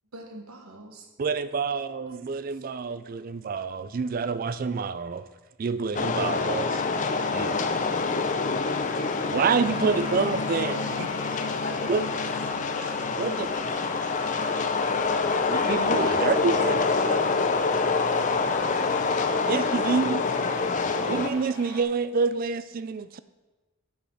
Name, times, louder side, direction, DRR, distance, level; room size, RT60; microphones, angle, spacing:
voice 1, 0.1-1.0 1.9-2.3 9.8-10.2 10.6-12.0 15.9-16.2, right 1 dB, 75° right, 3 dB, 1.4 m, -42 dB
voice 2, 1.2-5.3 5.6-6.8 7.3-7.6 9.3-11.1 11.9-12.1 12.8-12.9 13.2-13.5 15.5-16.8 17.0-17.3 19.5-20.3 21.1-23.2, right 5 dB, 40° right, 14 dB, 0.3 m, -27 dB
sound 1, 5.9-21.3, left 4 dB, 35° left, 0.5 m, -26 dB
sound 2, 7.0-21.8, left 2 dB, 55° left, 1.5 m, -43 dB
voice 3, 16.0-19.7, left 1 dB, 85° left, 0 dB, 2.0 m, -43 dB
8.5 x 6.3 x 5.7 m, 1.2 s
head